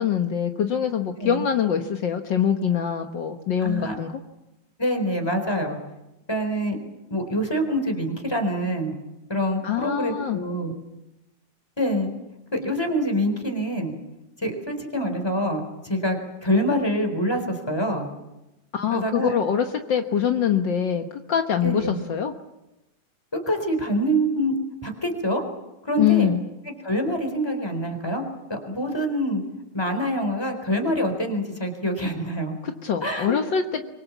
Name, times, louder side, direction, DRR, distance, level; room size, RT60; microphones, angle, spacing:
voice 1, 0.0-4.1 9.6-10.4 18.7-22.3 26.0-26.4 32.6-33.8, left 8 dB, 65° left, 5 dB, 1.1 m, -24 dB
voice 2, 3.6-4.0 4.8-5.8 6.3-6.8 7.1-9.0 9.3-10.7 11.8-12.1 12.5-13.9 14.4-18.1 18.9-19.3 21.6-22.0 23.5-24.5 24.8-25.4 25.8-26.3 26.8-28.2 28.5-29.4 29.7-32.5 33.0-33.4, equal, 5° left, 5 dB, 3.8 m, -25 dB
25.0 x 24.0 x 7.3 m, 0.96 s
omnidirectional pair, 3.8 m